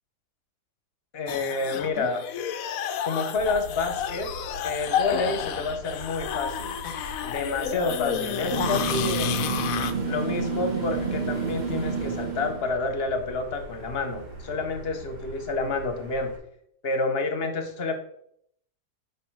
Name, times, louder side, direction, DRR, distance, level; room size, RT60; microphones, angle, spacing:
voice 1, 1.1-2.2 3.0-4.3 4.6-6.8 7.2-9.3 10.1-16.3 16.8-17.9, left 3 dB, 45° left, 6 dB, 1.0 m, -29 dB
sound 1, 1.3-9.9, left 9 dB, 70° left, 0.9 m, -30 dB
Motor vehicle (road), 3.4-16.4, right 1 dB, 85° right, 2.3 m, -44 dB
sound 2, 8.5-12.7, right 5 dB, 30° right, 1.2 m, -29 dB
5.9 x 5.2 x 4.6 m, 0.70 s
omnidirectional pair, 1.7 m